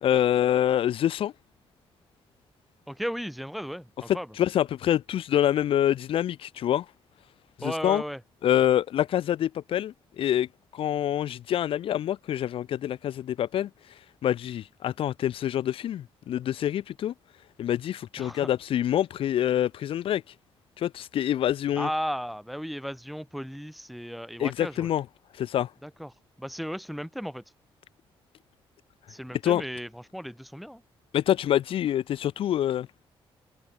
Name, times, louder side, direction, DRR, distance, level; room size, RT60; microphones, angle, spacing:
voice 1, 0.0-1.3 4.1-6.9 7.6-8.0 8.4-10.5 10.7-13.7 14.2-17.1 17.6-20.2 20.8-21.9 24.4-25.0 25.3-25.7 29.4-29.6 31.1-32.9, left 11 dB, 75° left, 0.8 m, -26 dB
voice 2, 2.9-4.3 7.6-8.2 18.2-18.5 21.8-24.9 25.8-26.1 26.4-27.4 29.1-30.8, equal, ahead, 4.2 m, -35 dB
cardioid pair, 115°, 10 cm